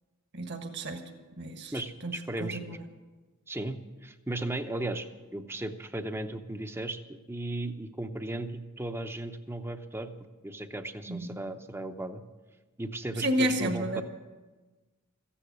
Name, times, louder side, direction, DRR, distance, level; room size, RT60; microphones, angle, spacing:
voice 1, 0.3-1.0 1.4-1.7 2.0-2.8 11.1-11.4 13.2-14.0, right 1 dB, 50° right, 4 dB, 1.5 m, -31 dB
voice 2, 1.7-2.8 3.5-5.1 5.3-7.0 7.3-10.1 10.4-12.2 12.8-14.0, right 1 dB, 10° right, 8 dB, 0.7 m, -36 dB
15.0 x 10.0 x 8.0 m, 1.2 s
head